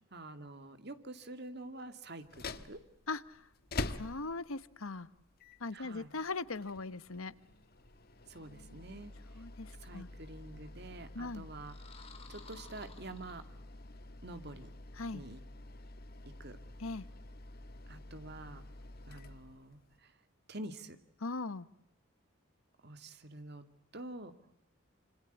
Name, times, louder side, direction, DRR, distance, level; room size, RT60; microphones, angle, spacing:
voice 1, 0.1-2.8 5.7-6.1 8.3-9.1 9.8-11.8 12.3-13.4 14.2-14.7 15.1-15.4 16.4-16.6 17.9-18.6 19.1-20.1 20.5-21.0 22.8-23.6 23.9-24.4, right 2 dB, 50° right, 9 dB, 2.3 m, -47 dB
sound 1, 2.2-20.0, left 2 dB, 50° left, 1.4 m, -47 dB
voice 2, 3.1-3.4 3.9-5.1 5.6-7.3 9.3-10.1 11.1-11.4 14.9-15.2 16.8-17.1 21.2-21.7, left 3 dB, 90° left, 15 dB, 1.2 m, -40 dB
sound 2, 11.6-13.9, left 4 dB, 30° left, 3.3 m, -56 dB
27.0 x 26.5 x 8.1 m, 0.79 s
head